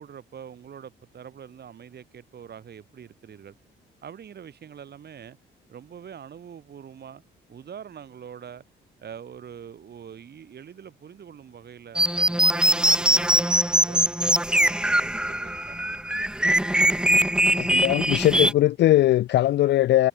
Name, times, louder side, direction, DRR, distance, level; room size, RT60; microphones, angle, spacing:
voice 1, 0.0-3.5 4.0-5.4 5.7-7.2 7.5-8.6 9.0-16.0, right 8 dB, 55° right, 6.1 m, -44 dB
sound 1, 11.9-18.5, right 1 dB, 5° right, 1.0 m, -22 dB
voice 2, 17.5-20.1, left 14 dB, 60° left, 0.4 m, -20 dB
cardioid pair, 90°, 20 cm